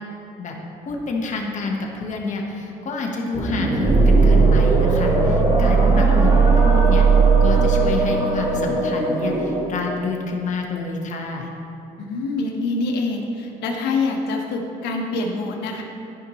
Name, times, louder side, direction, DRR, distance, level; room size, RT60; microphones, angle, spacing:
voice 1, 0.8-7.1 7.4-11.5, left 3 dB, 45° left, 0 dB, 1.4 m, -28 dB
sound 1, 3.3-9.8, equal, 30° right, 1.9 m, -23 dB
sound 2, 3.8-9.3, right 5 dB, 15° right, 0.6 m, -17 dB
voice 2, 12.0-15.8, left 3 dB, 85° left, 1 dB, 1.2 m, -25 dB
13.5 x 5.5 x 3.2 m, 2.9 s
cardioid pair, 110°, 17 cm